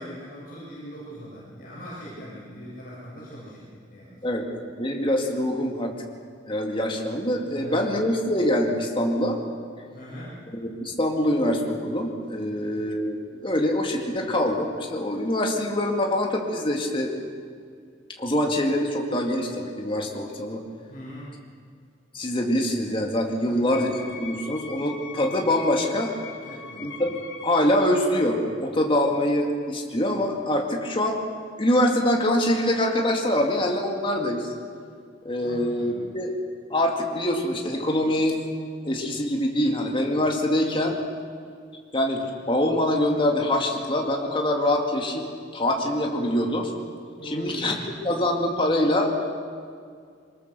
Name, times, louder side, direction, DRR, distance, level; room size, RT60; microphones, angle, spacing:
voice 1, 0.0-4.4 7.5-8.0 9.9-10.4 12.5-12.9 20.9-21.3 23.4-23.8 26.5-26.9 35.4-35.9 47.2-47.8, equal, 50° left, -7 dB, 7.8 m, -41 dB
voice 2, 4.8-5.9 6.5-9.4 10.5-17.1 18.2-20.6 22.1-26.1 26.8-27.1 27.4-31.2 31.6-34.5 35.2-36.3 36.7-38.4 38.8-40.9 41.9-45.3 45.5-46.7 47.2-47.7 48.0-49.1, left 1 dB, 25° left, 1 dB, 2.1 m, -24 dB
Wind instrument woodwind instrument, 23.7-28.0, left 5 dB, 75° left, 3.1 m, -41 dB
23.5 x 20.0 x 6.8 m, 2.2 s
head